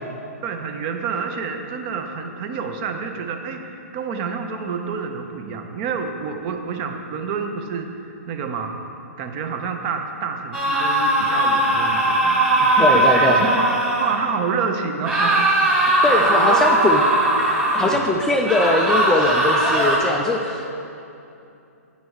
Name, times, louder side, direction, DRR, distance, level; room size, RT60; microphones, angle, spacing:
voice 1, 0.4-8.8 9.2-13.7 13.9-15.5 16.2-17.1 17.7-18.0, right 5 dB, 35° right, 5 dB, 0.7 m, -28 dB
sound 1, 10.5-14.2 15.0-18.0 18.4-20.0, right 1 dB, 10° right, 1.5 m, -19 dB
voice 2, 12.8-13.5 16.0-17.0 17.7-20.7, left 2 dB, 5° left, 0 dB, 0.3 m, -21 dB
8.3 x 5.4 x 4.7 m, 2.7 s
hypercardioid pair, 140°, 8 cm